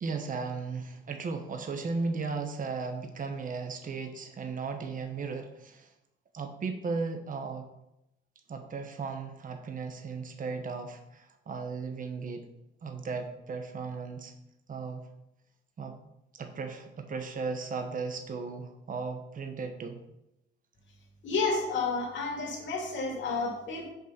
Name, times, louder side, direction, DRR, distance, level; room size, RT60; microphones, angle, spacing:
voice 1, 0.0-5.9 6.3-7.7 8.5-12.5 12.8-14.3 14.7-15.1 15.8-16.0 16.3-20.0, right 4 dB, 45° right, 5 dB, 1.1 m, -36 dB
voice 2, 21.2-23.9, left 4 dB, 65° left, -1 dB, 2.7 m, -31 dB
6.6 x 5.5 x 5.8 m, 0.88 s
cardioid pair, 90°, 20 cm